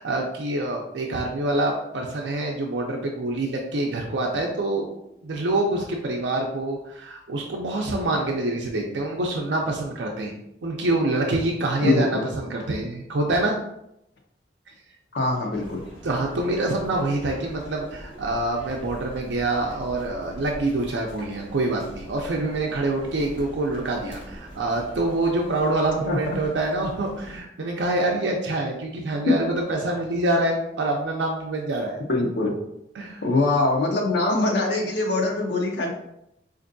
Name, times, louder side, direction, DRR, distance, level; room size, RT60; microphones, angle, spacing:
voice 1, 0.0-4.9 5.2-10.3 10.6-13.6 16.0-32.0 32.9-33.2, right 2 dB, 85° right, 0 dB, 0.5 m, -26 dB
voice 2, 11.8-12.3 15.1-15.8 26.1-26.2 29.2-29.3 32.1-32.6 33.2-35.9, left 2 dB, 75° left, 0 dB, 0.6 m, -23 dB
sound 1, 15.5-27.4, equal, 50° left, 1.5 m, -43 dB
4.3 x 2.6 x 2.6 m, 0.80 s
head